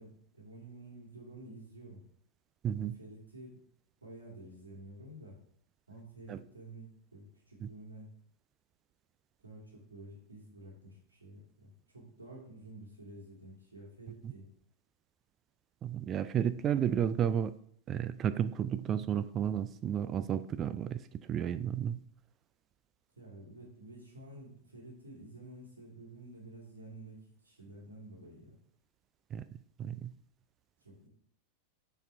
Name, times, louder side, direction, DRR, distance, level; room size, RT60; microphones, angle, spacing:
voice 1, 0.0-2.0 2.7-3.6 4.0-5.4 5.9-8.1 9.4-14.5 23.2-28.6 30.8-31.1, right 1 dB, 80° right, -3 dB, 2.3 m, -50 dB
voice 2, 2.6-3.0 6.3-6.4 7.6-7.7 15.8-17.5 17.9-21.0 21.3-22.0 29.3-29.5 29.8-30.1, right 9 dB, 30° right, 14 dB, 0.3 m, -32 dB
7.1 x 4.5 x 3.4 m, 0.68 s
figure-of-eight pair, 90°, 0 cm